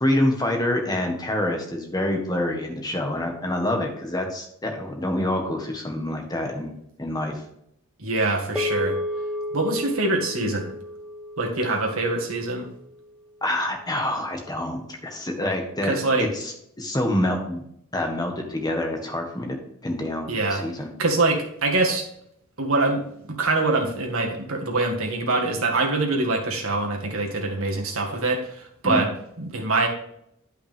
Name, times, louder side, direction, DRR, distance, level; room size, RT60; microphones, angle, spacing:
voice 1, 0.0-6.7 7.0-7.4 13.4-17.6 17.9-19.6 19.8-20.9 28.8-29.0, left 1 dB, 20° left, 2 dB, 1.5 m, -26 dB
voice 2, 8.0-9.0 9.5-10.7 11.4-12.7 15.8-16.3 20.3-20.6 21.0-22.0 22.6-29.1 29.4-29.9, right 2 dB, 70° right, 1 dB, 1.9 m, -24 dB
sound 1, 8.6-13.1, left 1 dB, 5° right, 0.9 m, -32 dB
10.0 x 5.7 x 3.6 m, 0.73 s
head